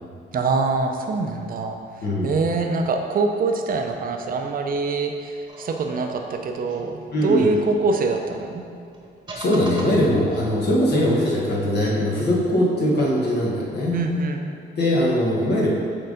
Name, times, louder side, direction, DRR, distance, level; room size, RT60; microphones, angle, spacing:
voice 1, 0.3-1.8 2.2-8.6 13.9-14.5, right 3 dB, 45° right, 4 dB, 0.6 m, -24 dB
voice 2, 2.0-2.3 7.1-7.5 9.3-14.0 14.8-15.7, left 1 dB, 55° left, -5 dB, 1.3 m, -21 dB
sound 1, 5.5-8.2 8.9-10.9, right 1 dB, 20° right, 1.2 m, -40 dB
6.7 x 3.9 x 3.8 m, 2.4 s
cardioid pair, 90°, 20 cm